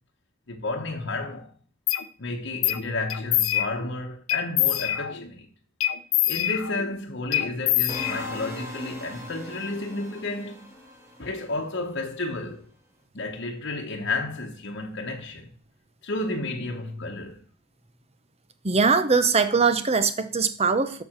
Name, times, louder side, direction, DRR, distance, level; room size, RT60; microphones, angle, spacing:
voice 1, 0.5-1.5 2.2-5.5 6.3-10.7 11.2-12.7 13.1-15.5 16.0-17.5, left 2 dB, 55° left, 1.1 m, -32 dB
sound 1, 1.9-2.0 2.6-2.8 3.1-3.9 4.3-5.3 5.8-6.9 7.3-8.6, left 13 dB, 80° left, 0.8 m, -25 dB
sound 2, 7.9-11.9, left 1 dB, 15° right, 2.2 m, -40 dB
voice 2, 18.6-21.0, right 4 dB, 30° right, 0.8 m, -21 dB
7.7 x 5.7 x 7.3 m
head